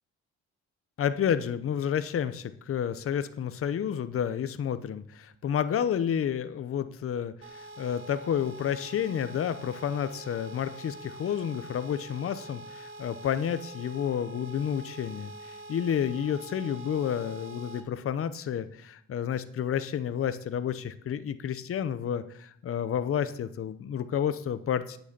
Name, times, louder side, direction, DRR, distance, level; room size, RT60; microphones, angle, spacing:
voice 1, 1.0-25.0, left 8 dB, 45° left, 12 dB, 0.8 m, -30 dB
sound 1, 7.4-17.8, right 2 dB, 40° right, 1.7 m, -45 dB
8.8 x 6.2 x 8.2 m, 0.66 s
cardioid pair, 90°, 30 cm